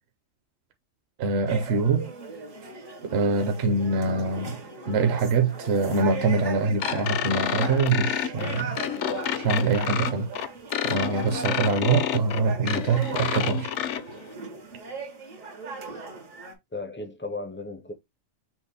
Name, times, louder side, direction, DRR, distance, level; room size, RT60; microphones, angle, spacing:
voice 1, 1.2-2.1 3.0-4.6 4.9-8.8 9.4-10.3 10.8-13.7, right 4 dB, 60° right, 0.9 m, -24 dB
sound 1, 1.5-16.5, right 3 dB, 80° right, 1.8 m, -38 dB
sound 2, 6.8-14.0, left 9 dB, 70° left, 0.9 m, -29 dB
voice 2, 16.7-17.9, left 2 dB, 20° left, 0.3 m, -35 dB
5.9 x 2.1 x 4.1 m
omnidirectional pair, 1.3 m